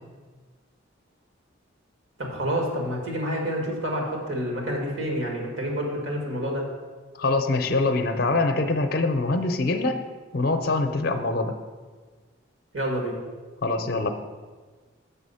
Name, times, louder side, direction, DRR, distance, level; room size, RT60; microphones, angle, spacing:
voice 1, 2.2-6.7 12.7-13.2, equal, 75° right, 0 dB, 1.8 m, -28 dB
voice 2, 7.2-10.0 10.3-11.5 13.6-14.1, left 3 dB, 50° left, 7 dB, 0.5 m, -24 dB
6.8 x 5.5 x 5.5 m, 1.4 s
head